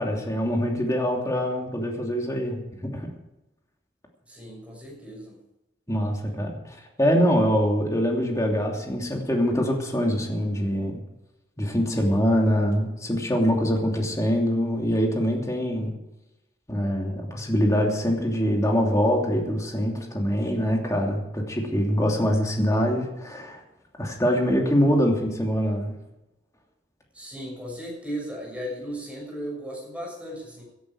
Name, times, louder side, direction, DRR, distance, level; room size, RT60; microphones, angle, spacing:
voice 1, 0.0-3.1 5.9-11.0 11.6-15.9 16.7-23.6 24.0-25.9, equal, 20° left, 0 dB, 2.9 m, -24 dB
voice 2, 4.3-5.4 27.1-30.6, equal, 5° right, -2 dB, 6.5 m, -36 dB
17.0 x 11.0 x 4.9 m, 0.93 s
head